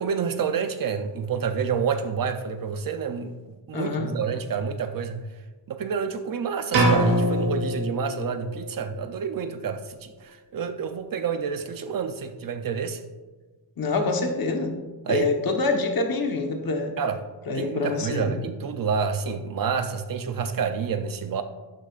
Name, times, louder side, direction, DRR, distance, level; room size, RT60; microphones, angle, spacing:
voice 1, 0.0-3.3 3.7-5.2 5.7-13.0 15.1-15.3 17.0-17.2 17.5-21.4, right 6 dB, 50° right, 9 dB, 0.6 m, -28 dB
voice 2, 3.7-4.1 13.8-14.7 15.1-16.9 17.5-18.3, left 3 dB, 50° left, 3 dB, 1.2 m, -26 dB
sound 1, 6.7-8.6, right 1 dB, 85° right, 2.9 m, -23 dB
12.0 x 10.0 x 2.4 m, 1.3 s
wide cardioid pair, 175°, 44 cm